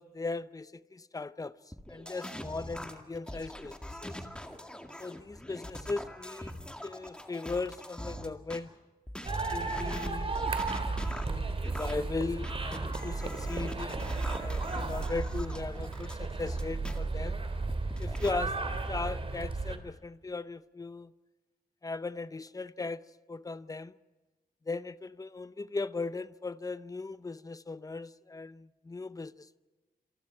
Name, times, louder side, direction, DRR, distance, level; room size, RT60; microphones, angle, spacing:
voice 1, 0.0-1.6 1.9-4.1 5.0-6.5 6.8-8.7 9.5-10.4 11.2-17.4 18.0-18.5 18.9-21.1 21.8-23.0 23.3-23.9 24.7-29.6, left 3 dB, 20° left, 0.7 m, -38 dB
sound 1, 1.7-8.6 9.1-17.0 17.4-18.3, left 1 dB, 5° left, 2.0 m, -43 dB
sound 2, 9.2-19.8, right 3 dB, 35° right, 2.6 m, -34 dB
28.0 x 27.0 x 4.6 m
wide cardioid pair, 170°, 16 cm